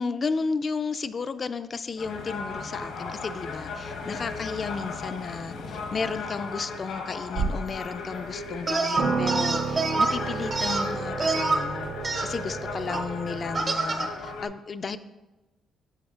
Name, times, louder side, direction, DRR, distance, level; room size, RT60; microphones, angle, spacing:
voice 1, 0.0-11.9 12.2-15.0, left 4 dB, 40° left, 12 dB, 0.3 m, -33 dB
sound 1, 2.0-14.4, left 4 dB, 85° left, 1.0 m, -36 dB
sound 2, 7.4-7.8 8.4-8.5 8.9-13.6, right 5 dB, 70° right, 0.4 m, -31 dB
sound 3, 8.7-10.2 10.5-11.6 12.0-12.3 12.9-13.0 13.5-14.1, right 3 dB, 40° right, 0.8 m, -26 dB
12.0 x 5.0 x 2.4 m, 1.1 s
cardioid pair, 90°, 0 cm